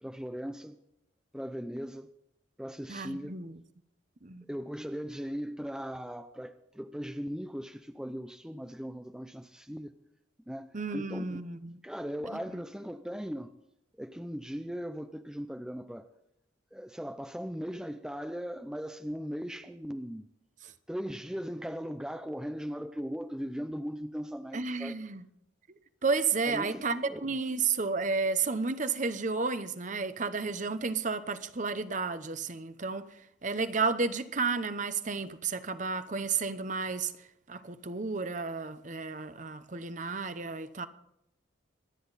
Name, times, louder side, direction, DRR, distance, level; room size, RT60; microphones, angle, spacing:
voice 1, 0.0-0.8 1.3-2.1 2.6-3.4 4.5-10.0 10.5-11.4 11.8-13.5 13.9-16.1 16.7-20.3 20.9-25.0 26.5-27.4, equal, 5° right, 0.5 m, -38 dB
voice 2, 2.9-3.6 4.2-4.4 10.7-11.8 12.3-12.6 20.6-20.7 24.5-25.2 26.0-33.0 33.4-37.1 37.5-40.9, right 4 dB, 40° right, 0.9 m, -32 dB
24.5 x 10.0 x 4.1 m
head